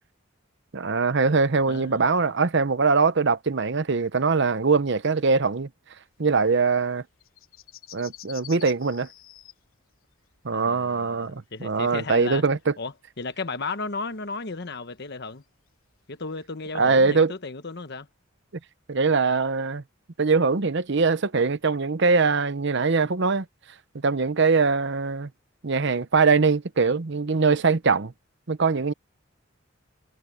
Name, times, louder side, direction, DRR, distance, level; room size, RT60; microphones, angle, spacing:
voice 1, 0.7-5.7 6.2-7.0 7.9-9.1 10.4-12.7 16.7-17.3 18.9-19.8 20.2-23.4 24.0-25.3 25.6-28.1 28.5-28.9, right 4 dB, 60° right, 0.8 m, -22 dB
voice 2, 1.7-2.1 10.5-12.4 12.8-15.4 16.1-18.1, left 3 dB, 55° left, 1.2 m, -34 dB
sound 1, 6.2-12.6 12.8-16.5, left 12 dB, 90° left, 3.1 m, -48 dB
head